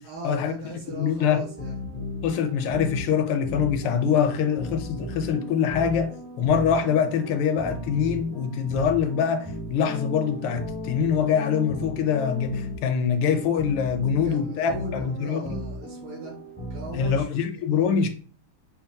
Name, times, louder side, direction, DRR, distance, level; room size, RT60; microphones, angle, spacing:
voice 1, 0.0-1.8 14.1-16.4 16.7-18.1, right 2 dB, 75° right, 2.3 m, -39 dB
voice 2, 0.9-1.5 2.2-6.1 6.4-15.6 16.9-18.1, left 7 dB, 85° left, 1.5 m, -24 dB
sound 1, 1.3-17.2, left 1 dB, 20° left, 0.4 m, -36 dB
5.0 x 2.5 x 2.7 m
omnidirectional pair, 2.3 m